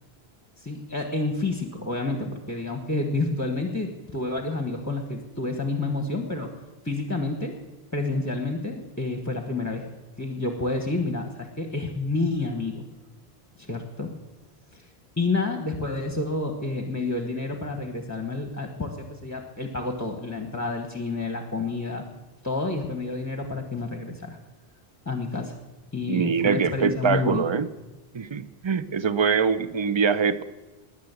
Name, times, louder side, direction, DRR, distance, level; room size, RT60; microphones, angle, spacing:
voice 1, 0.6-6.5 6.8-7.5 7.9-9.9 10.2-12.8 13.6-14.1 14.7-14.9 15.2-22.1 22.4-24.4 25.0-25.6 25.9-27.4, left 3 dB, 15° left, 3 dB, 1.2 m, -29 dB
voice 2, 26.1-27.7 28.1-30.4, right 6 dB, 35° right, 13 dB, 0.5 m, -23 dB
20.0 x 6.8 x 8.1 m, 1.2 s
omnidirectional pair, 1.1 m